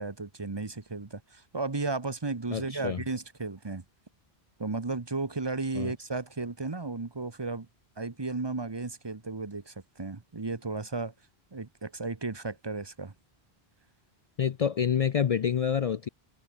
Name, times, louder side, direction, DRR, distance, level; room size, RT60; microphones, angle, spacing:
voice 1, 0.0-3.8 4.6-7.7 8.0-11.1 11.5-13.1, right 3 dB, 25° right, 1.0 m, -34 dB
voice 2, 2.5-3.0 5.7-5.9 14.4-16.1, left 8 dB, 55° left, 0.4 m, -27 dB
omnidirectional pair, 1.1 m